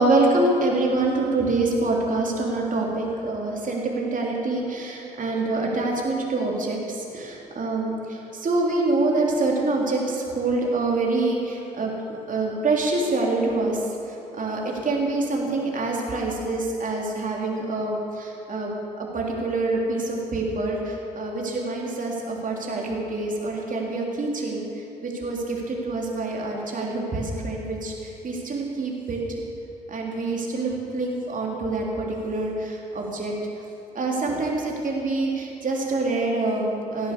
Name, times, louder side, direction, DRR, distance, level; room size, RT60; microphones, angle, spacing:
voice 1, 0.0-11.9 12.3-18.7 19.0-29.2 29.9-33.3 34.0-37.1, right 2 dB, 40° right, -1 dB, 3.6 m, -26 dB
16.5 x 11.0 x 6.8 m, 2.7 s
figure-of-eight pair, 45°, 21 cm